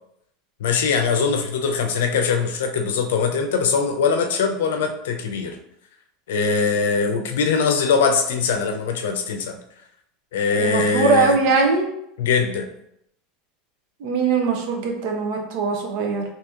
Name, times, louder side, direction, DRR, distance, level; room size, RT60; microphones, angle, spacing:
voice 1, 0.6-5.6 6.3-9.5 10.3-11.4 12.2-12.7, left 5 dB, 90° left, 5 dB, 0.5 m, -21 dB
voice 2, 10.6-11.9 14.0-16.2, right 4 dB, 65° right, 2 dB, 0.8 m, -21 dB
2.8 x 2.8 x 3.6 m, 0.76 s
supercardioid pair, 130°, 0 cm